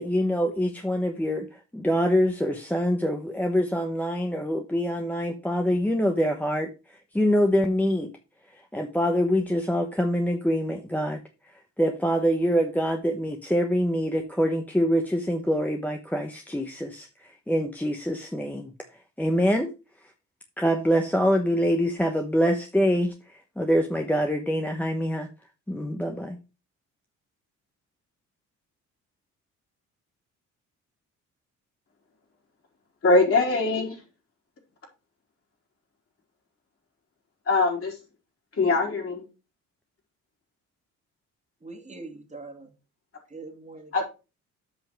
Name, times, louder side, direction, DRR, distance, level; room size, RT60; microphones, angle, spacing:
voice 1, 0.0-6.7 7.1-8.1 8.7-11.2 11.8-18.7 19.2-19.7 20.6-25.3 25.7-26.4, equal, 5° left, 1.0 m, -25 dB
voice 2, 33.0-34.0 37.5-38.0 38.6-39.3 43.9-44.0, left 3 dB, 45° left, 4.2 m, -22 dB
voice 3, 41.6-42.7 43.3-44.0, right 3 dB, 25° right, 2.1 m, -42 dB
7.7 x 5.7 x 4.6 m
cardioid pair, 90°, 30 cm